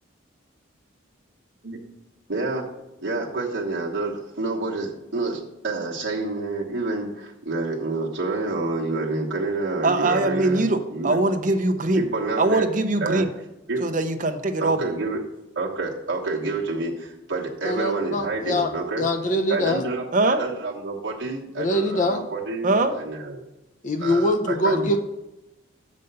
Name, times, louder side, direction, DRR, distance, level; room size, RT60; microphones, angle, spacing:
voice 1, 2.3-2.7 3.0-11.2 12.0-12.7 13.0-13.2 13.7-13.8 14.6-15.2 15.5-19.0 19.5-23.5 24.0-24.9, right 3 dB, 70° right, -3 dB, 1.2 m, -28 dB
voice 2, 9.8-12.0 12.4-13.3 13.8-14.8 20.1-20.4 22.6-22.9, right 2 dB, 40° right, 7 dB, 0.7 m, -22 dB
voice 3, 17.6-18.7 19.0-19.8 21.6-22.2 23.8-25.0, left 1 dB, 40° left, 5 dB, 0.5 m, -23 dB
6.7 x 5.2 x 6.7 m, 0.98 s
head